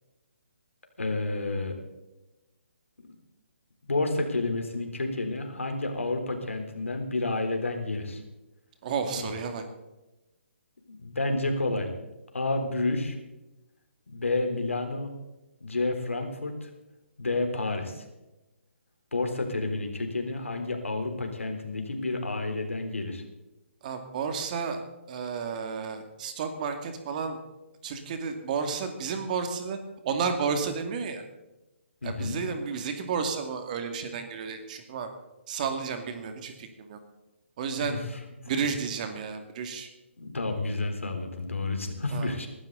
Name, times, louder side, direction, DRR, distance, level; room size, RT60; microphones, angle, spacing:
voice 1, 1.0-1.7 3.9-8.2 9.1-9.3 11.0-12.0 12.3-13.2 14.1-15.1 15.6-16.7 17.2-18.0 19.1-23.2 32.0-32.4 37.8-38.1 38.6-38.7 40.2-42.5, left 2 dB, 90° left, 4 dB, 3.7 m, -30 dB
voice 2, 8.8-9.6 23.8-24.8 25.1-27.4 27.8-29.8 30.0-31.2 32.0-35.1 35.5-37.0 37.6-38.0 38.5-39.9 42.1-42.5, right 6 dB, 40° right, 6 dB, 2.3 m, -32 dB
20.5 x 13.0 x 4.0 m, 1.0 s
hypercardioid pair, 145°, 7 cm